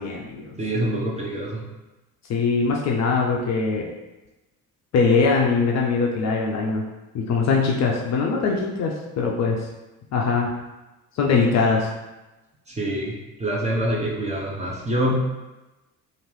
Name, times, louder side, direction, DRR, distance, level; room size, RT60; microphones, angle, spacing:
voice 1, 0.0-0.6 2.3-3.9 4.9-6.9 7.1-9.7 10.1-10.5 11.1-11.9, left 4 dB, 40° left, -1 dB, 0.5 m, -22 dB
voice 2, 0.6-1.6 12.7-15.2, right 1 dB, 15° right, -3 dB, 0.6 m, -25 dB
2.9 x 2.5 x 3.0 m, 1.1 s
figure-of-eight pair, 50°, 44 cm